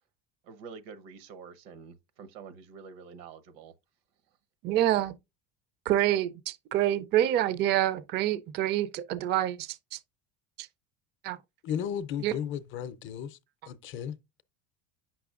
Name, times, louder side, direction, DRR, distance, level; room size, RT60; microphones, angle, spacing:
voice 1, 0.4-3.7, right 5 dB, 85° right, 1.0 m, -47 dB
voice 2, 4.6-5.1 5.9-10.0 10.6-10.7 11.2-11.4 12.2-12.3, right 12 dB, 35° right, 0.4 m, -27 dB
voice 3, 11.6-13.4 13.7-14.2, left 9 dB, 45° left, 0.5 m, -34 dB
8.6 x 5.9 x 2.4 m
cardioid pair, 150°, 29 cm